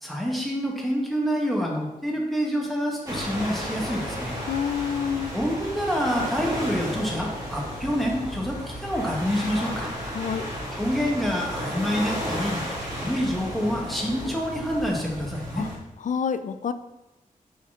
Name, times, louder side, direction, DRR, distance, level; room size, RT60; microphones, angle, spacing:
voice 1, 0.0-4.4 5.3-9.9 10.7-15.7, equal, ahead, -2 dB, 1.3 m, -27 dB
sound 1, 3.1-15.8, equal, 25° right, 2.0 m, -33 dB
voice 2, 4.5-5.3 10.1-10.5 15.6-15.7 16.0-16.7, left 7 dB, 60° left, 11 dB, 0.4 m, -27 dB
6.3 x 4.1 x 3.7 m, 0.98 s
wide cardioid pair, 105°, 15 cm